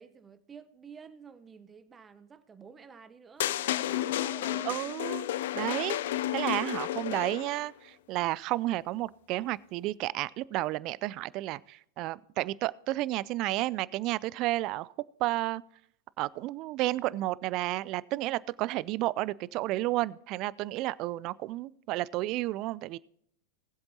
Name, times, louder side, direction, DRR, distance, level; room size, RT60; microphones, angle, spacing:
voice 1, 0.0-4.8, right 6 dB, 20° right, 0.9 m, -50 dB
sound 1, 3.4-7.7, left 13 dB, 65° left, 0.4 m, -32 dB
voice 2, 4.7-5.3 5.5-6.0 6.3-14.9 15.2-15.6 16.2-23.0, right 17 dB, 45° right, 0.4 m, -31 dB
20.0 x 7.8 x 2.9 m
hypercardioid pair, 100°, 0 cm